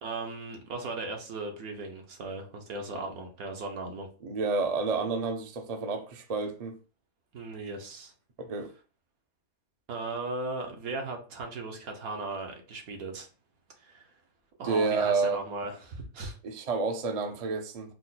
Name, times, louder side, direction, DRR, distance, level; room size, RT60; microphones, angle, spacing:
voice 1, 0.0-4.1 7.3-8.1 9.9-13.3 13.8-14.1 14.6-16.4, right 3 dB, 80° right, 1.4 m, -37 dB
voice 2, 4.2-6.8 8.4-8.7 14.6-15.4 16.4-17.9, right 4 dB, 55° right, 0.4 m, -29 dB
4.4 x 2.2 x 4.0 m
omnidirectional pair, 1.5 m